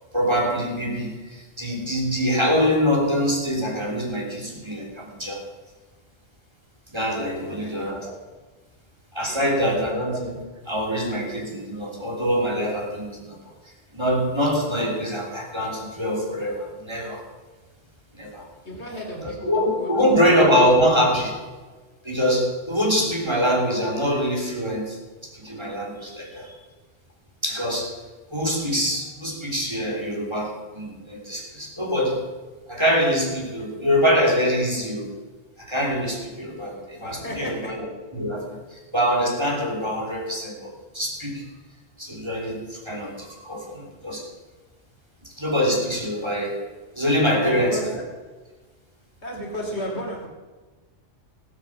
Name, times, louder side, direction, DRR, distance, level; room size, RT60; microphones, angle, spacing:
voice 1, 0.1-5.4 6.9-8.1 9.1-13.4 13.9-17.3 18.2-18.5 19.5-21.4 22.0-25.0 25.3-26.5 27.4-27.9 28.3-32.2 32.7-35.1 35.6-37.9 38.1-41.4 42.0-44.2 45.2-46.6 46.9-47.9, equal, 20° right, -2 dB, 3.3 m, -24 dB
voice 2, 7.3-7.9 9.3-9.6 18.6-20.5 37.0-37.5 47.4-47.8 49.2-50.3, equal, 65° left, 0 dB, 3.3 m, -34 dB
17.0 x 8.1 x 7.3 m, 1.3 s
omnidirectional pair, 1.2 m